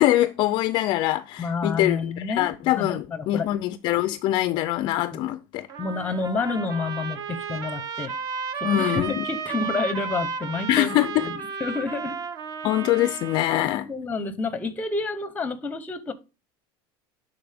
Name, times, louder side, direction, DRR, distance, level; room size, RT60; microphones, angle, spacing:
voice 1, 0.0-5.7 8.6-9.2 10.7-11.3 12.6-13.9, left 14 dB, 40° left, 0.3 m, -23 dB
voice 2, 1.4-3.5 5.1-5.2 5.8-8.1 8.6-12.2 13.8-16.1, left 4 dB, 15° left, 0.7 m, -29 dB
Trumpet, 5.7-13.6, right 6 dB, 30° right, 0.7 m, -33 dB
11.0 x 4.0 x 3.4 m
cardioid pair, 165°, 12 cm